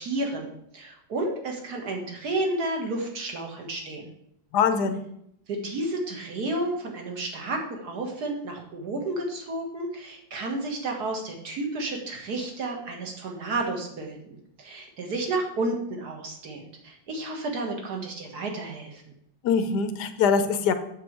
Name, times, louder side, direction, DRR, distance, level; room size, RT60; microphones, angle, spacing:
voice 1, 0.0-4.1 5.5-19.0, right 2 dB, 50° right, 2 dB, 2.0 m, -31 dB
voice 2, 4.5-5.0 19.4-20.7, left 6 dB, 65° left, 9 dB, 1.1 m, -23 dB
7.8 x 7.0 x 4.6 m, 0.72 s
omnidirectional pair, 2.3 m